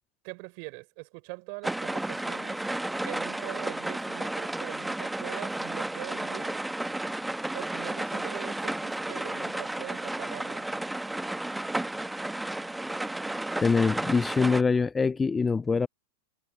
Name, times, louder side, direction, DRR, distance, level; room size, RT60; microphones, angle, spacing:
voice 1, 0.2-2.6 3.1-6.6 7.5-10.7, right 40 dB or more, 45° right, 5.8 m, -42 dB
sound 1, 1.6-14.6, right 1 dB, 5° right, 1.0 m, -33 dB
voice 2, 13.6-15.9, left 4 dB, 15° left, 0.4 m, -24 dB
figure-of-eight pair, 90°, 0 cm